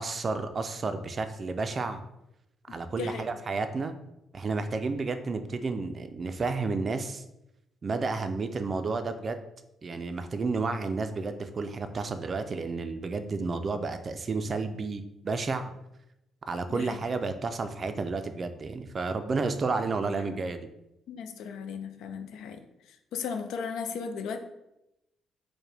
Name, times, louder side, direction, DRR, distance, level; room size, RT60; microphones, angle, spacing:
voice 1, 0.0-2.0 2.7-3.9 4.3-7.2 7.8-9.4 9.8-15.7 16.5-20.7, right 3 dB, 40° right, 8 dB, 0.3 m, -31 dB
voice 2, 2.7-3.3 3.5-3.6 16.7-17.0 21.1-22.7 23.1-24.4, left 6 dB, 85° left, 8 dB, 0.4 m, -36 dB
4.6 x 2.1 x 3.3 m, 0.88 s
cardioid pair, 90°, 0 cm